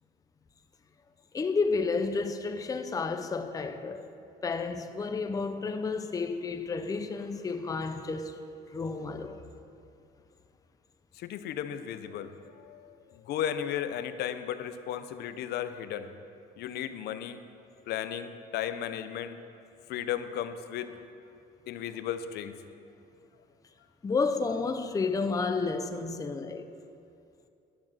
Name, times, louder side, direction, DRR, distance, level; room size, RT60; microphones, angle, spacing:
voice 1, 1.3-4.1 4.4-8.4 8.7-9.5 24.0-26.7, left 4 dB, 20° left, 0.6 m, -31 dB
voice 2, 11.2-17.4 17.9-19.4 19.9-21.0 21.7-22.5, left 10 dB, 75° left, 0.7 m, -35 dB
11.0 x 7.3 x 6.2 m
cardioid pair, 110°, 17 cm